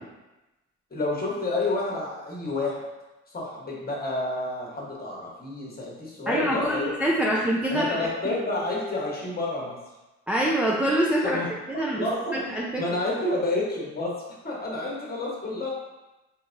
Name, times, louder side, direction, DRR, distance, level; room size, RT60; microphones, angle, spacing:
voice 1, 0.9-2.8 3.3-6.9 7.2-7.3 7.7-9.8 11.2-12.4 12.8-14.1 14.4-15.7, left 2 dB, 30° left, -3 dB, 1.1 m, -29 dB
voice 2, 6.3-7.9 10.3-11.4 11.7-12.1 12.3-12.8, right 1 dB, 5° right, -5 dB, 0.4 m, -25 dB
4.0 x 2.9 x 2.5 m, 1.0 s
cardioid pair, 90°, 30 cm